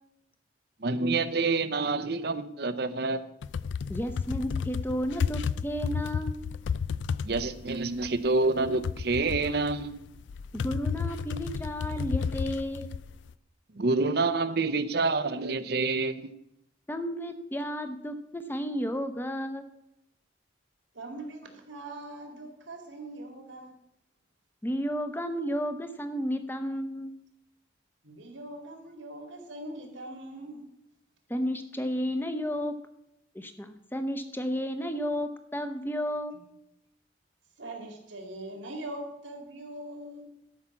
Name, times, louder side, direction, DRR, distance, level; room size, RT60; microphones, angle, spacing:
voice 1, 0.8-3.2 7.2-9.9 13.8-16.3, right 3 dB, 55° right, 0.7 m, -27 dB
sound 1, 3.4-13.3, left 6 dB, 75° left, 0.4 m, -32 dB
voice 2, 3.9-6.4 10.6-12.9 16.9-19.7 24.6-27.1 31.3-32.7 33.3-36.4, equal, 10° left, 0.7 m, -32 dB
voice 3, 20.9-23.7 28.0-30.6 37.6-40.2, right 1 dB, 85° right, 2.4 m, -41 dB
12.0 x 5.6 x 7.1 m
head